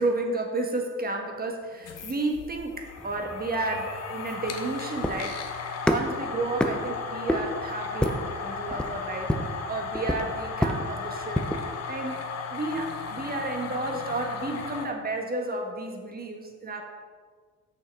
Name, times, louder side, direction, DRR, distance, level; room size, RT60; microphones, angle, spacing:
voice 1, 0.0-5.4 5.8-9.4 9.7-11.4 11.9-12.2 12.5-16.8, right 2 dB, 30° right, 2 dB, 1.3 m, -32 dB
sound 1, 1.7-14.9, left 5 dB, 55° left, 0.9 m, -36 dB
sound 2, 3.0-11.7, equal, 5° left, 0.5 m, -30 dB
6.5 x 5.6 x 4.7 m, 1.5 s
cardioid pair, 90°, 30 cm